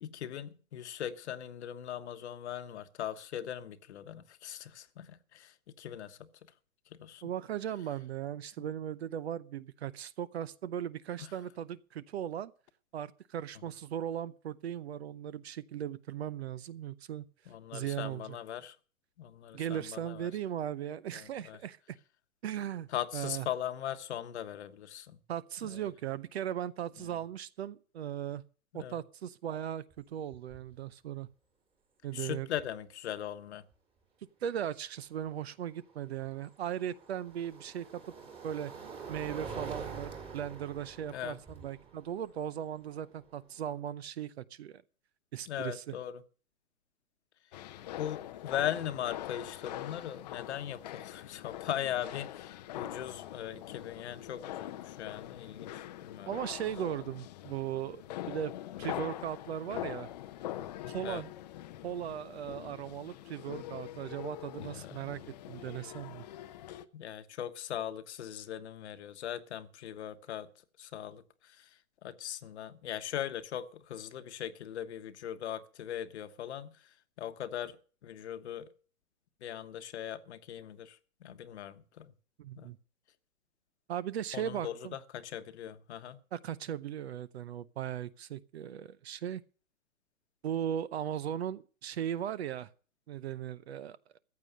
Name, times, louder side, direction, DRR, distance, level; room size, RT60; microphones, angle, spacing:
voice 1, 0.0-6.5 6.9-7.3 8.6-8.7 11.2-11.3 17.5-18.8 19.2-20.3 21.1-21.6 22.9-25.2 25.6-25.8 27.0-27.2 28.7-29.0 32.1-33.6 41.1-41.4 45.5-46.2 48.0-56.3 60.4-60.7 61.0-61.2 64.6-65.1 66.9-70.5 70.8-71.7 72.0-76.8 77.2-77.8 78.0-78.7 79.4-82.1 82.5-82.7 84.3-86.2, left 10 dB, 50° left, 1.2 m, -40 dB
voice 2, 7.2-12.5 12.9-17.2 17.7-18.4 19.5-21.8 22.4-22.9 23.1-23.5 25.3-28.4 28.7-31.3 32.0-32.5 34.4-38.0 38.4-38.7 39.1-44.8 45.3-45.9 56.3-58.5 58.8-60.1 60.9-61.3 61.8-66.2 82.4-82.8 83.9-85.0 86.3-89.4 90.4-92.7 93.1-94.2, right 10 dB, 45° right, 0.7 m, -38 dB
sound 1, 29.9-30.0 30.3-30.7 32.6-32.7 35.7-43.8, right 5 dB, 10° right, 2.0 m, -46 dB
sound 2, 47.5-66.8, left 13 dB, 30° left, 0.7 m, -43 dB
14.5 x 8.5 x 6.4 m
hypercardioid pair, 145°, 43 cm